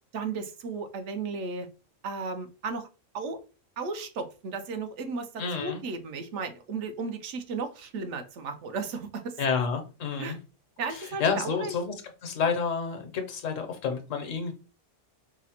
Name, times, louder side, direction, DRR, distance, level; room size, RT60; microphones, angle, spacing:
voice 1, 0.1-1.7 2.0-2.9 3.1-3.4 3.8-9.4 10.2-10.4 10.8-11.7, right 4 dB, 70° right, 8 dB, 0.9 m, -34 dB
voice 2, 5.4-5.8 9.4-10.4 11.2-11.9 12.2-14.5, left 5 dB, 85° left, 5 dB, 1.1 m, -29 dB
4.9 x 2.0 x 2.8 m, 0.32 s
omnidirectional pair, 1.3 m